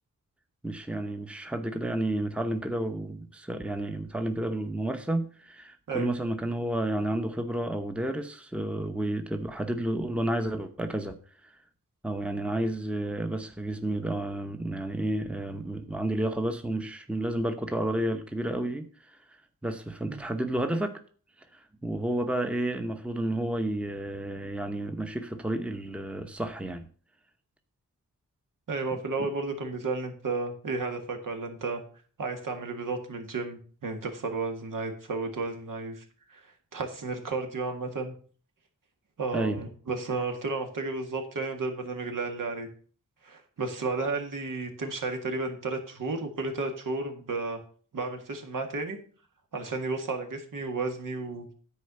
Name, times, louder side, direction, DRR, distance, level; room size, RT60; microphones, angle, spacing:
voice 1, 0.6-11.2 11.4-11.5 12.0-19.2 19.6-21.0 21.5-26.9 29.2-29.3 39.3-39.6, right 1 dB, 5° right, 0.8 m, -31 dB
voice 2, 28.7-31.8 32.2-36.0 36.3-38.1 39.2-42.7 43.2-47.6 47.9-49.0 49.5-51.5, right 3 dB, 75° right, 1.9 m, -33 dB
9.8 x 4.5 x 6.9 m
wide cardioid pair, 105°, 32 cm